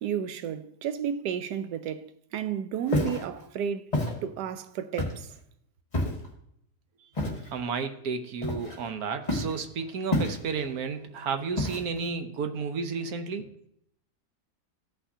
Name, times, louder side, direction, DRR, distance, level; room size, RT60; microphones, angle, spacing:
voice 1, 0.0-5.3, right 8 dB, 90° right, 1.2 m, -32 dB
Walk footsteps, 2.9-3.2 3.9-4.2 5.0-5.3 5.9-6.3 7.2-7.5 8.4-8.9 9.3-9.6 10.1-10.6 11.6-12.1, left 1 dB, 25° left, 1.5 m, -28 dB
voice 2, 7.5-13.5, right 5 dB, 70° right, 1.2 m, -32 dB
14.5 x 5.7 x 2.7 m
omnidirectional pair, 1.7 m